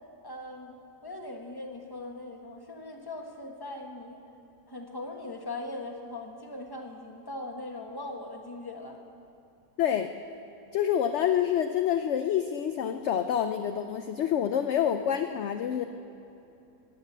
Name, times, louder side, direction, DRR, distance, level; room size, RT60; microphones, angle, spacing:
voice 1, 0.2-0.7 1.0-4.2 4.7-9.0, left 2 dB, 15° left, 2 dB, 1.2 m, -40 dB
voice 2, 9.8-10.1 10.7-15.8, left 9 dB, 65° left, 8 dB, 0.7 m, -27 dB
15.5 x 9.9 x 8.1 m, 2.9 s
omnidirectional pair, 1.7 m